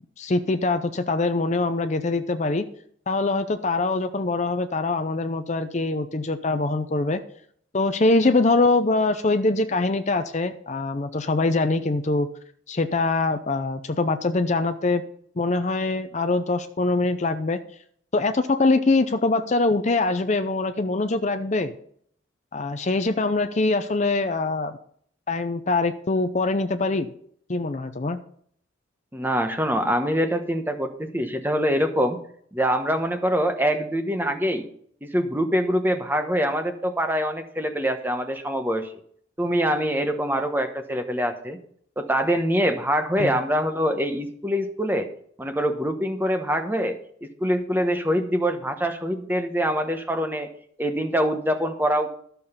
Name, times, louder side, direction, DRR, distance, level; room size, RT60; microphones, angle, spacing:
voice 1, 0.2-2.7 3.1-7.2 7.7-12.3 12.7-15.0 15.4-17.6 18.1-21.7 22.5-24.8 25.3-27.1 27.5-28.2 43.2-43.3, left 3 dB, 35° left, 9 dB, 0.6 m, -23 dB
voice 2, 29.1-32.2 32.5-34.7 35.0-38.9 39.4-41.6 42.0-45.1 45.4-50.5 50.8-52.1, equal, 10° right, 7 dB, 1.0 m, -24 dB
13.0 x 6.8 x 5.6 m, 0.62 s
head